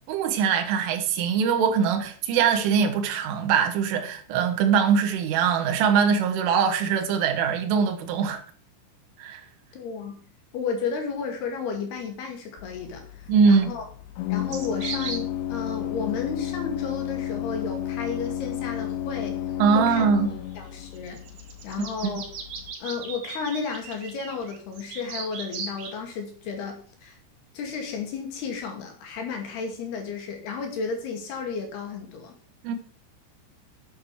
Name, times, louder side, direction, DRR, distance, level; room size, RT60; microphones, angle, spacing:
voice 1, 0.1-8.4 9.2-9.4 13.3-13.7 19.6-20.3 22.0-22.2 32.6-32.8, right 6 dB, 75° right, 4.0 m, -22 dB
voice 2, 9.7-10.2 10.5-13.8 14.3-19.4 19.7-20.1 20.6-21.2 21.6-22.2 22.8-27.2 27.5-32.3, left 5 dB, 55° left, 4.0 m, -33 dB
Organ, 12.6-22.7, left 11 dB, 75° left, 2.9 m, -32 dB
sound 1, 14.5-15.2 20.0-20.1 20.9-26.0, right 5 dB, 55° right, 3.7 m, -37 dB
9.7 x 9.0 x 6.1 m
omnidirectional pair, 5.9 m